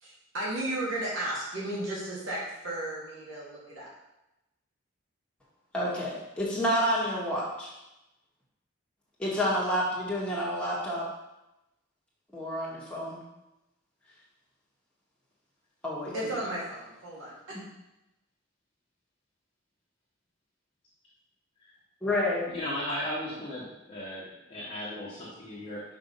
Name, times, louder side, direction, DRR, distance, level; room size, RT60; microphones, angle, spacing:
voice 1, 0.0-3.9 16.1-17.6, right 1 dB, 80° right, -7 dB, 2.7 m, -34 dB
voice 2, 5.7-7.7 9.2-11.1 12.3-13.2 15.8-16.1 22.0-22.5, equal, 5° left, -7 dB, 2.1 m, -29 dB
voice 3, 22.5-25.8, left 1 dB, 25° left, -8 dB, 1.6 m, -36 dB
6.1 x 5.2 x 5.7 m, 0.92 s
head